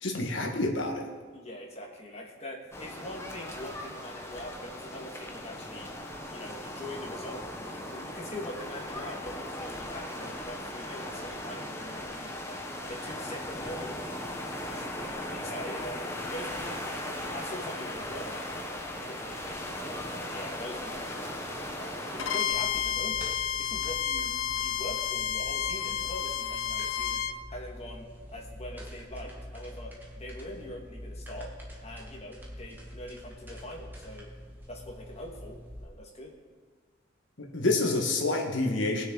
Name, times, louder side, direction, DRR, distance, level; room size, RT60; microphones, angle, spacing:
voice 1, 0.0-1.0 37.4-39.0, left 2 dB, 65° left, 1 dB, 1.6 m, -28 dB
voice 2, 1.3-5.9 6.3-12.6 12.9-14.3 14.7-19.8 20.3-23.3 23.6-27.2 27.5-31.5 31.8-34.3 34.7-36.3, left 1 dB, 35° left, -1 dB, 1.8 m, -43 dB
sound 1, 2.7-22.4, left 1 dB, 15° left, 0.9 m, -38 dB
Bowed string instrument, 22.2-27.4, left 9 dB, 90° left, 0.5 m, -31 dB
sound 2, 22.5-35.8, equal, 10° right, 1.6 m, -45 dB
19.5 x 6.5 x 3.9 m, 1.5 s
head